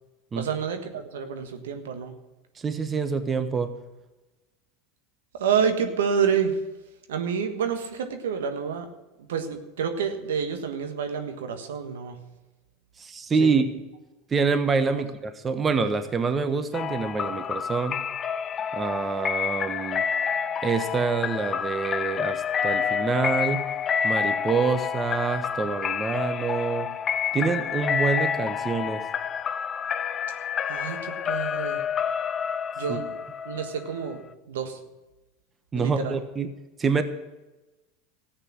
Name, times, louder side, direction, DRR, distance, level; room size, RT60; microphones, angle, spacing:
voice 1, 0.3-2.1 5.3-6.6 7.1-8.9 9.3-12.2 13.4-13.6 30.7-31.8 32.8-33.2 33.4-34.8 35.7-36.2, right 7 dB, 80° right, 7 dB, 1.4 m, -28 dB
voice 2, 2.5-3.7 13.0-13.6 14.3-18.0 18.7-20.0 20.6-23.6 24.0-26.9 27.3-29.1 32.9-33.0 35.7-36.5 36.8-37.0, right 5 dB, 25° right, 10 dB, 1.2 m, -26 dB
sound 1, 16.7-34.3, left 7 dB, 35° left, 0.6 m, -29 dB
14.0 x 8.7 x 7.4 m, 1.1 s
hypercardioid pair, 90°, 0 cm